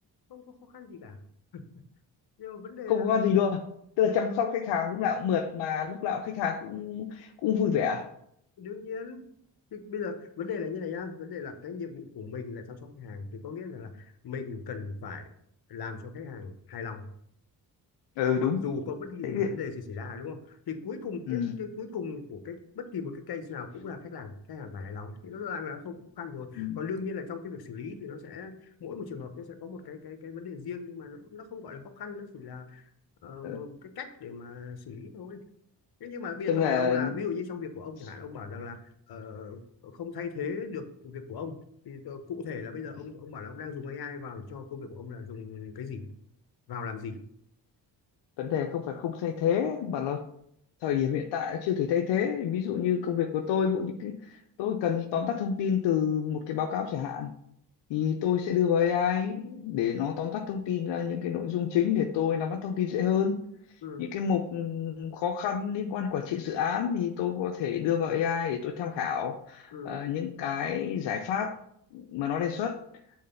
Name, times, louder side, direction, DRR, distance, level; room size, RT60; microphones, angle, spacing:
voice 1, 0.3-1.2 1.5-1.8 2.4-3.1 4.0-4.5 8.6-9.3 9.7-15.3 15.7-17.1 18.2-32.9 33.2-35.4 36.0-41.6 41.8-46.1 46.7-47.2 63.8-64.1 69.7-69.9, left 5 dB, 60° left, 8 dB, 1.1 m, -38 dB
voice 2, 2.9-3.6 4.0-8.1 18.2-18.6 19.2-19.5 21.3-21.6 26.6-26.8 33.4-33.6 36.5-37.1 48.4-50.2 50.8-57.3 57.9-63.4 64.0-71.6 71.9-72.8, left 8 dB, 90° left, 5 dB, 0.6 m, -28 dB
6.5 x 4.0 x 5.5 m, 0.72 s
cardioid pair, 65°, 42 cm